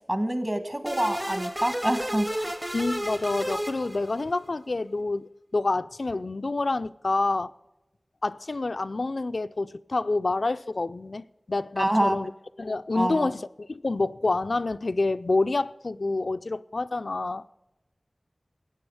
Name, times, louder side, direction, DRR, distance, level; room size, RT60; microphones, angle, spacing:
voice 1, 0.1-2.6 11.8-12.2 12.9-13.3, right 1 dB, 30° right, 1.5 m, -26 dB
sound 1, 0.9-4.4, equal, 15° right, 0.8 m, -32 dB
voice 2, 2.7-7.5 8.2-12.3 12.6-17.5, left 3 dB, 75° left, 0.3 m, -28 dB
14.5 x 8.9 x 4.8 m
wide cardioid pair, 40°, 0 cm